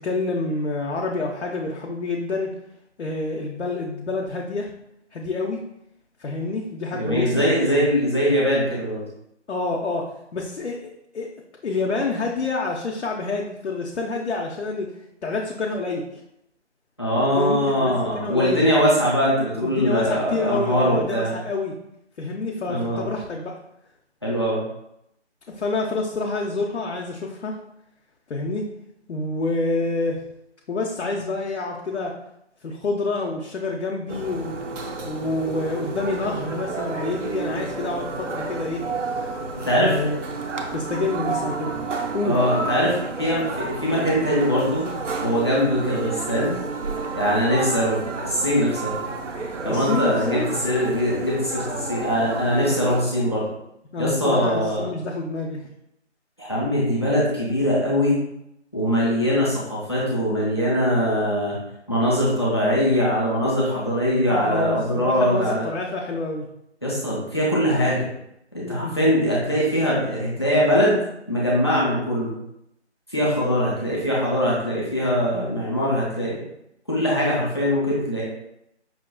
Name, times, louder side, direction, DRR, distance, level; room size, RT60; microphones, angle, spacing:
voice 1, 0.0-2.5 3.0-4.7 5.1-5.6 6.2-7.4 9.5-10.1 10.3-10.8 11.1-11.3 11.6-14.9 15.2-16.0 17.3-18.6 19.6-21.7 22.2-23.5 25.5-27.6 28.3-28.7 29.1-30.2 30.7-32.1 32.6-34.5 35.1-38.8 39.8-40.2 40.7-41.8 42.1-42.4 49.7-50.5 53.9-55.6 64.3-66.5 68.6-68.9, left 3 dB, 70° left, -1 dB, 0.6 m, -27 dB
voice 2, 6.9-9.0 17.0-21.3 22.6-23.0 24.2-24.6 39.6-40.0 42.2-44.8 45.2-46.5 47.1-49.0 49.6-53.4 54.0-54.9 56.4-58.2 58.7-61.5 61.9-65.7 66.8-68.1 68.7-71.0 71.3-72.3 73.1-76.4 76.9-78.2, equal, 25° left, -7 dB, 0.7 m, -22 dB
sound 1, 34.1-53.0, right 3 dB, 85° right, 0.7 m, -31 dB
5.7 x 2.4 x 2.2 m, 0.80 s
figure-of-eight pair, 165°, 35 cm